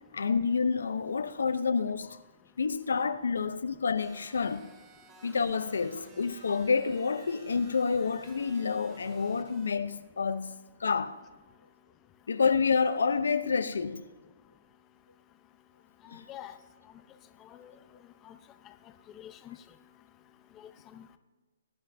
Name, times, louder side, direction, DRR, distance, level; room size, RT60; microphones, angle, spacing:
voice 1, 0.1-2.2 2.6-4.7 5.2-10.5 10.8-11.2 12.3-14.0 16.1-16.2, left 5 dB, 85° left, 0.7 m, -28 dB
sound 1, 4.0-9.7, right 3 dB, 25° right, 2.1 m, -55 dB
voice 2, 16.0-16.5 17.5-17.7 18.3-18.4 19.1-19.6 20.6-21.0, left 11 dB, 20° left, 0.7 m, -46 dB
21.5 x 9.9 x 2.7 m
hypercardioid pair, 150°, 0 cm